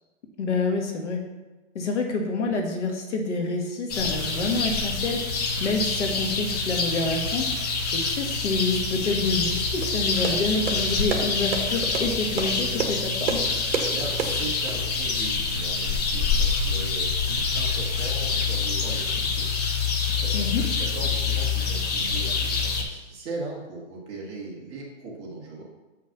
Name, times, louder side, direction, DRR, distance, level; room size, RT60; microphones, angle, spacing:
voice 1, 0.4-1.2 1.8-13.4 20.3-20.7, left 3 dB, 65° left, 3 dB, 1.9 m, -28 dB
sound 1, 3.9-22.8, left 4 dB, 30° left, 1.1 m, -26 dB
sound 2, 9.8-14.8, right 5 dB, 50° right, 1.5 m, -31 dB
voice 2, 13.8-19.6 20.2-25.6, right 3 dB, 15° right, -4 dB, 1.4 m, -38 dB
7.4 x 5.8 x 5.8 m, 1.1 s
hypercardioid pair, 165°, 38 cm